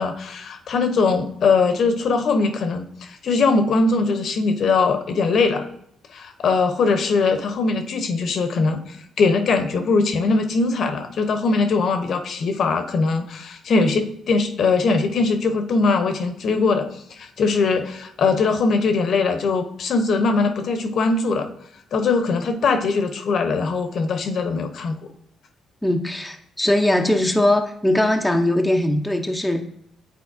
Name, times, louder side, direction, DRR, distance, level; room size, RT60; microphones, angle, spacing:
voice 1, 0.0-5.6 6.1-21.5 21.9-25.0, left 4 dB, 60° left, 7 dB, 0.9 m, -21 dB
voice 2, 25.8-29.6, left 1 dB, 5° left, 2 dB, 0.7 m, -20 dB
9.3 x 4.1 x 2.7 m, 0.73 s
cardioid pair, 90°, 0 cm